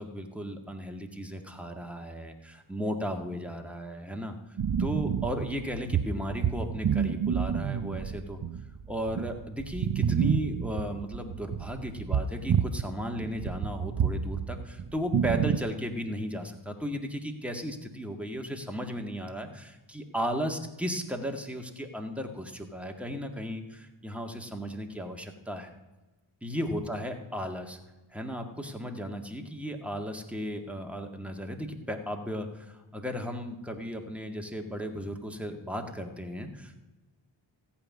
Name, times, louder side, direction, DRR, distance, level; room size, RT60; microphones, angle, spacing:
voice 1, 0.0-4.4 4.8-8.4 8.9-25.7 26.4-27.8 28.1-36.8, equal, 5° right, 3 dB, 1.9 m, -35 dB
sound 1, 4.6-12.9 13.1-15.6, right 7 dB, 45° right, 0.6 m, -29 dB
14.5 x 5.7 x 9.4 m, 1.1 s
cardioid pair, 55°, 48 cm